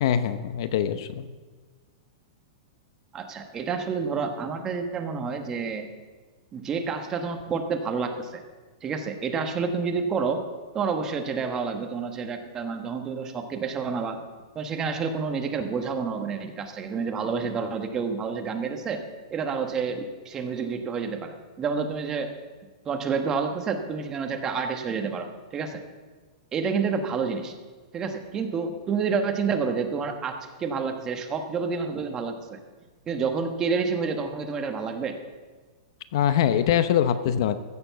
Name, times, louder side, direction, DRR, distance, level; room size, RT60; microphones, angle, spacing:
voice 1, 0.0-1.3 36.1-37.6, left 9 dB, 55° left, 12 dB, 0.7 m, -23 dB
voice 2, 3.1-5.9 6.5-8.4 8.8-10.4 10.7-14.2 14.5-19.0 19.3-22.3 22.8-25.8 26.5-27.5 27.9-32.6 33.1-35.2, right 5 dB, 20° right, 6 dB, 1.1 m, -29 dB
15.0 x 6.9 x 6.9 m, 1.4 s
supercardioid pair, 155°, 3 cm